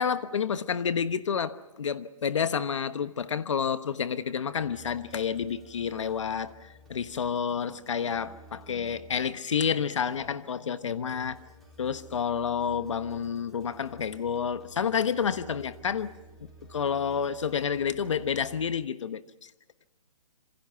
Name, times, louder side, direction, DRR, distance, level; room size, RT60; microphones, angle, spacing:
voice 1, 0.0-11.4 11.8-16.1 16.4-19.5, left 7 dB, 55° left, 12 dB, 1.2 m, -29 dB
sound 1, 4.6-18.7, right 1 dB, ahead, 4.1 m, -53 dB
26.5 x 26.5 x 5.8 m, 1.0 s
hypercardioid pair, 170°, 19 cm